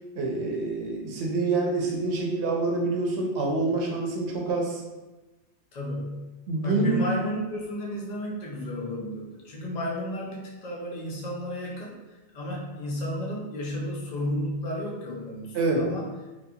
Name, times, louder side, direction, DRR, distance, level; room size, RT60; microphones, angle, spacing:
voice 1, 0.2-4.8 6.5-7.0 15.5-15.9, right 3 dB, 75° right, 0 dB, 0.9 m, -26 dB
voice 2, 5.7-6.3 6.6-12.0 12.3-16.0, equal, 50° left, -3 dB, 0.5 m, -33 dB
2.8 x 2.3 x 2.3 m, 1.1 s
omnidirectional pair, 1.2 m